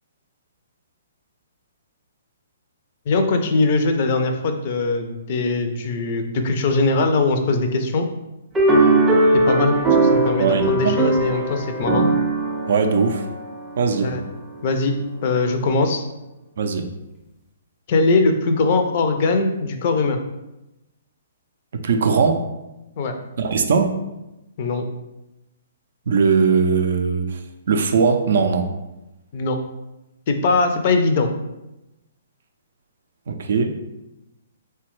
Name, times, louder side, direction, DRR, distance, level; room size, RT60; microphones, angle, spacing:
voice 1, 3.1-8.1 9.3-9.8 10.0-12.1 14.0-14.2 14.6-14.9 15.2-16.1 17.9-20.2 23.0-23.1 24.6-24.8 29.3-29.6 30.3-31.3, left 3 dB, 45° left, 6 dB, 0.4 m, -21 dB
sound 1, 8.5-14.1, right 2 dB, 10° right, 0.5 m, -19 dB
voice 2, 10.4-11.0 12.7-13.3 13.8-14.2 16.6-16.8 21.7-22.4 23.4-24.0 26.1-27.4 27.7-28.7 33.3-33.7, right 5 dB, 60° right, 6 dB, 0.4 m, -19 dB
3.2 x 2.2 x 3.0 m, 0.95 s
figure-of-eight pair, 125°, 0 cm